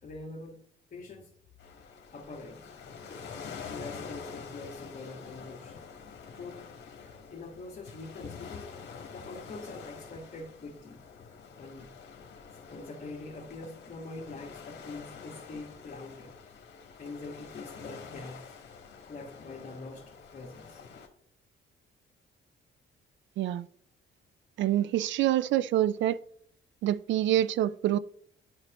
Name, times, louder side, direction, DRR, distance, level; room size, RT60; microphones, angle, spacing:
voice 1, 0.0-0.6 0.9-1.3 2.1-2.7 3.4-5.8 6.3-6.6 7.3-8.7 9.1-11.1 11.6-11.9 12.5-16.3 17.0-18.5 19.1-20.8, left 3 dB, 40° left, 1.6 m, -44 dB
sound 1, 1.6-21.1, left 6 dB, 60° left, 1.5 m, -47 dB
voice 2, 23.4-23.7 24.6-26.2 26.8-28.0, right 12 dB, 70° right, 0.4 m, -26 dB
10.5 x 4.4 x 3.0 m
cardioid pair, 90°, 20 cm